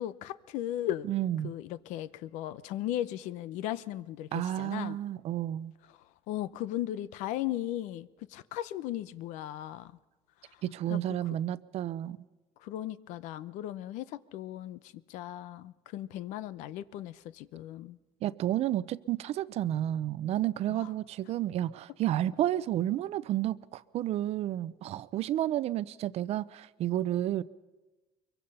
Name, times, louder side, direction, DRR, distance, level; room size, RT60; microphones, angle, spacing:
voice 1, 0.0-1.1 1.4-5.0 6.3-9.9 10.4-10.6 10.9-11.4 12.6-18.0 20.7-20.9, left 13 dB, 80° left, 0.8 m, -37 dB
voice 2, 1.1-1.5 4.3-5.7 10.6-12.2 18.2-27.4, right 12 dB, 55° right, 0.7 m, -31 dB
23.5 x 23.0 x 5.6 m
cardioid pair, 120°, 12 cm